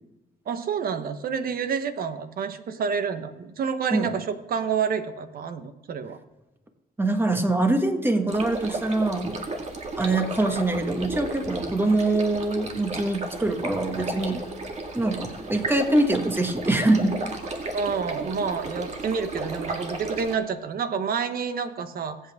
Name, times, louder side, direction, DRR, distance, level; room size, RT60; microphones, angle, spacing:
voice 1, 0.5-6.2 17.7-22.2, right 6 dB, 60° right, 10 dB, 1.1 m, -28 dB
voice 2, 7.0-9.4 10.0-14.4 14.9-17.2, right 2 dB, 10° right, 5 dB, 1.6 m, -24 dB
sound 1, 8.3-20.3, right 2 dB, 40° right, 1.9 m, -34 dB
21.0 x 8.4 x 3.6 m, 1.1 s
cardioid pair, 105°, 17 cm